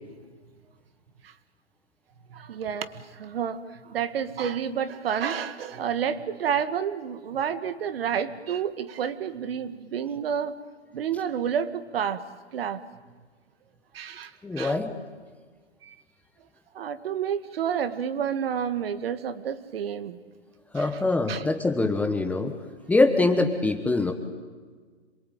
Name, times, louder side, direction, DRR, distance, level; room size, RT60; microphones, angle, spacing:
voice 1, 2.3-10.5 10.9-12.2 12.5-12.8 13.9-14.8 15.8-16.0 16.7-20.2 20.7-20.9 21.3-21.4, right 8 dB, 55° right, 12 dB, 2.0 m, -30 dB
voice 2, 14.4-14.9 20.7-22.6 22.9-24.1, left 2 dB, 5° left, 6 dB, 1.2 m, -23 dB
27.0 x 22.5 x 9.2 m, 1.5 s
hypercardioid pair, 150°, 34 cm